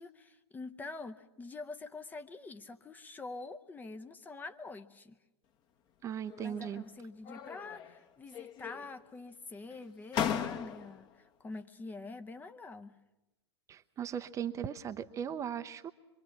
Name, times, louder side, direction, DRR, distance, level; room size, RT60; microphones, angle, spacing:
voice 1, 0.0-5.2 6.4-13.0, left 3 dB, 10° left, 9 dB, 0.9 m, -46 dB
voice 2, 6.0-6.8 13.7-15.9, right 8 dB, 20° right, 10 dB, 0.8 m, -38 dB
sound 1, 6.3-6.9 7.2-8.0 8.3-9.1 9.7-9.8 10.1-11.1, left 8 dB, 30° left, 1.3 m, -37 dB
24.5 x 23.5 x 7.3 m, 1.0 s
figure-of-eight pair, 105°, 15 cm